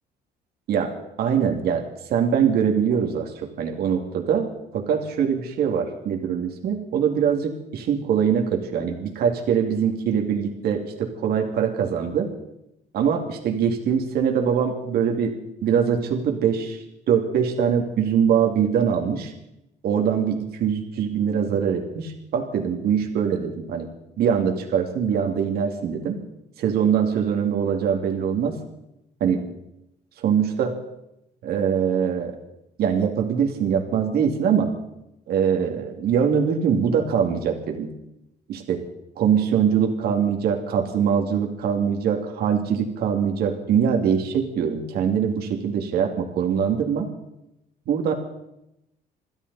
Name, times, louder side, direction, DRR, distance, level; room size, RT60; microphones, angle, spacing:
voice 1, 1.2-1.8 2.1-3.3 3.6-4.5 4.7-12.3 12.9-15.3 15.6-16.8 17.1-19.3 19.8-23.9 24.2-26.2 26.6-28.6 29.2-29.4 30.2-30.7 31.4-32.3 32.8-34.7 35.3-37.9 38.5-38.8 39.2-47.1 47.9-48.1, right 7 dB, 65° right, 2 dB, 2.4 m, -23 dB
28.0 x 12.0 x 4.1 m, 0.86 s
cardioid pair, 110°, 17 cm